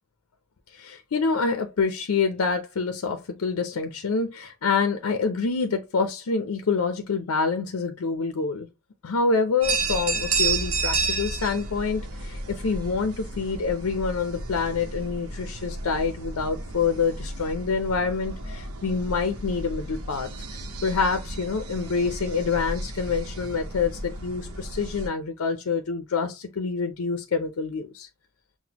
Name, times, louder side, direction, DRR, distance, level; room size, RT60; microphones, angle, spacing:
voice 1, 0.7-8.7 9.0-28.1, left 4 dB, 80° left, 0.5 m, -27 dB
sound 1, 9.6-25.1, right 3 dB, 80° right, 0.8 m, -32 dB
5.9 x 2.1 x 2.8 m
head